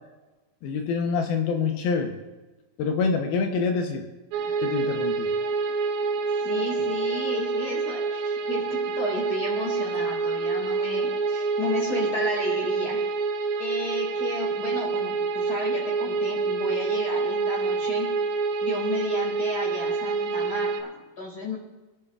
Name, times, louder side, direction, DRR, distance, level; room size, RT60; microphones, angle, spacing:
voice 1, 0.6-2.2 2.8-4.1 4.6-5.3, left 5 dB, 75° left, 4 dB, 2.7 m, -26 dB
sound 1, 4.3-20.8, right 4 dB, 75° right, 2.3 m, -27 dB
voice 2, 6.4-13.0 13.6-18.1 18.6-21.6, left 2 dB, 30° left, -2 dB, 2.1 m, -33 dB
24.5 x 10.5 x 2.4 m, 1.1 s
omnidirectional pair, 4.6 m